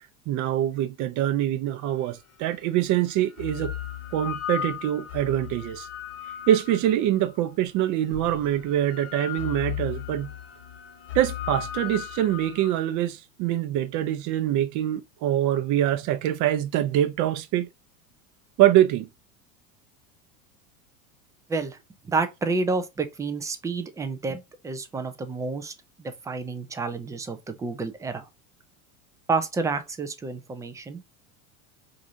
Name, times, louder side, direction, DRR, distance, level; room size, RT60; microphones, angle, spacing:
voice 1, 0.3-3.7 4.1-5.9 6.5-10.3 11.1-17.7 18.6-19.1, right 12 dB, 45° right, 0.6 m, -24 dB
sound 1, 2.1-2.2 3.1-7.4 8.1-12.8, left 10 dB, 35° left, 0.9 m, -36 dB
voice 2, 22.1-25.7 26.0-28.3 29.3-31.0, right 4 dB, 10° right, 0.3 m, -29 dB
4.8 x 2.5 x 2.6 m
hypercardioid pair, 90°, 44 cm